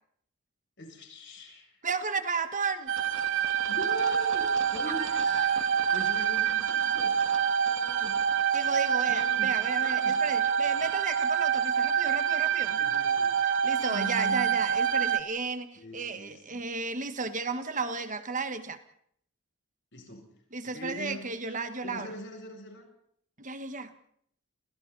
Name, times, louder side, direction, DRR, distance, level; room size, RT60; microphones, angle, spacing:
voice 1, 0.8-1.8 3.7-4.5 4.7-5.5 5.9-7.2 7.6-8.2 9.1-10.2 12.8-13.4 13.8-14.6 15.8-16.7 19.9-20.3 20.6-21.6 21.8-22.9, left 1 dB, 55° left, 2 dB, 7.8 m, -41 dB
voice 2, 1.8-2.9 4.9-5.8 8.5-12.8 13.6-18.8 20.5-22.1 23.4-23.9, right 4 dB, 35° right, 9 dB, 1.7 m, -34 dB
sound 1, 2.9-15.2, right 8 dB, 60° right, 2.3 m, -27 dB
29.5 x 28.5 x 4.2 m, 0.66 s
head